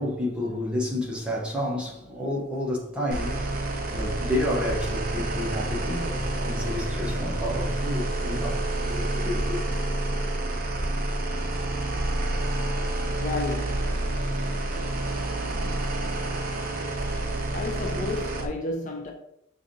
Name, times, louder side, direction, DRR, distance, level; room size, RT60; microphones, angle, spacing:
voice 1, 0.0-3.4 3.9-9.6, left 1 dB, 5° right, 0.7 m, -30 dB
sound 1, 3.1-18.5, right 1 dB, 45° right, 0.5 m, -28 dB
voice 2, 13.2-14.2 17.5-19.1, left 3 dB, 35° left, 0.4 m, -32 dB
4.8 x 2.5 x 2.6 m
head